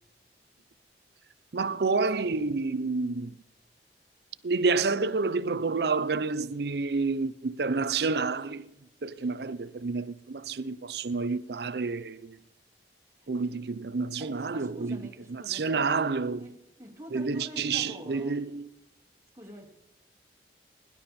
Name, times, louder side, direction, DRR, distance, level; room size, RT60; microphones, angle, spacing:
voice 1, 1.5-3.4 4.4-8.7 9.0-12.4 13.3-15.0 15.3-16.4 17.1-18.7, right 4 dB, 65° right, 0.6 m, -29 dB
voice 2, 14.2-16.1 16.4-18.4 19.3-19.7, equal, 15° right, 2.4 m, -46 dB
22.0 x 11.5 x 4.3 m
head